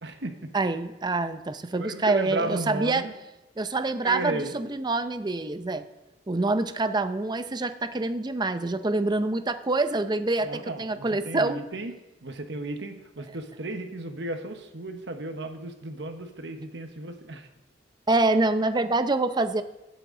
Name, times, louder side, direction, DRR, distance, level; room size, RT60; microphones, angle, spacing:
voice 1, 0.0-0.5 1.8-3.1 4.0-4.5 10.4-11.9 12.2-17.5, right 2 dB, 75° right, 6 dB, 1.2 m, -34 dB
voice 2, 0.5-3.0 3.6-5.9 6.3-11.6 18.1-19.6, right 2 dB, 25° right, 11 dB, 0.6 m, -26 dB
16.0 x 7.9 x 3.9 m, 0.99 s
head